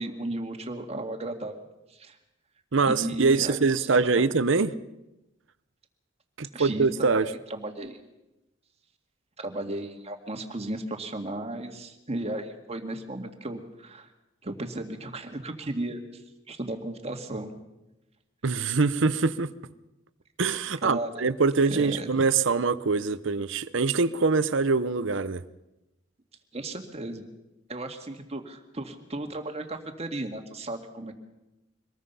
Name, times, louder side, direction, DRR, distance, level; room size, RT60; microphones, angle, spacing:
voice 1, 0.0-1.5 1.9-2.2 2.9-4.2 6.5-8.0 9.4-14.1 14.4-16.2 16.5-17.5 20.8-21.2 21.7-22.1 26.5-27.2 27.7-31.1, right 1 dB, 35° right, 2.0 m, -35 dB
voice 2, 2.7-4.7 6.4-7.3 18.4-19.5 20.4-25.4, right 4 dB, 75° right, 0.8 m, -24 dB
24.5 x 20.0 x 5.6 m
head